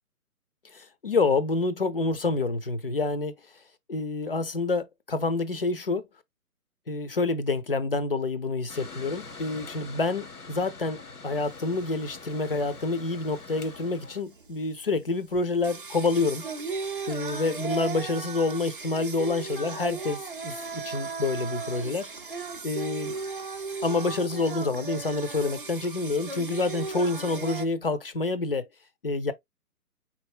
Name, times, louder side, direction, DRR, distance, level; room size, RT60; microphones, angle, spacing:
voice 1, 0.7-3.4 3.9-6.1 6.9-16.5 17.1-22.1 22.6-23.2 23.8-28.6 29.0-29.3, left 3 dB, 40° left, 0.6 m, -28 dB
Mechanical fan, 8.7-14.2, left 4 dB, 75° left, 1.1 m, -44 dB
Singing, 11.4-27.7, right 4 dB, 35° right, 0.5 m, -37 dB
4.5 x 4.1 x 2.3 m
figure-of-eight pair, 140°, 46 cm